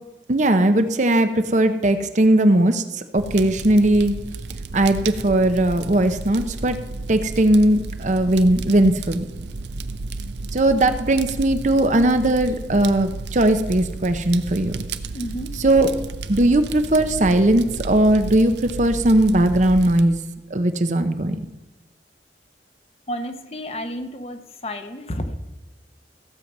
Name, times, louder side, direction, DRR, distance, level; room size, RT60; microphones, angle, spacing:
voice 1, 0.3-4.1 4.7-6.8 7.1-9.3 10.5-14.8 15.6-15.9 16.3-20.2 20.5-21.4, right 1 dB, 45° right, 9 dB, 0.8 m, -18 dB
Fire, 3.2-20.0, right 3 dB, 75° right, 0.6 m, -33 dB
voice 2, 15.1-15.6 23.1-25.4, equal, 35° left, 8 dB, 0.9 m, -31 dB
15.5 x 7.5 x 5.4 m, 1.1 s
head